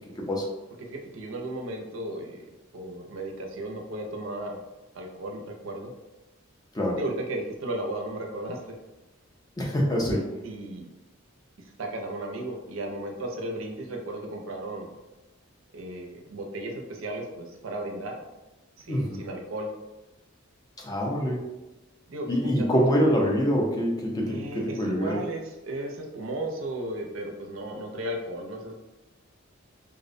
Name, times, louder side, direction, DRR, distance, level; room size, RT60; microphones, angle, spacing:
voice 1, 0.8-4.6 4.9-5.9 7.0-8.7 10.4-10.9 11.8-14.9 15.7-18.2 18.8-19.7 22.1-22.7 23.1-23.2 24.3-28.7, right 1 dB, 75° right, 1 dB, 0.4 m, -35 dB
voice 2, 9.6-10.3 18.9-19.2 20.8-21.5 22.3-25.2, equal, 20° left, -2 dB, 0.4 m, -25 dB
2.5 x 2.0 x 2.5 m, 1.0 s
head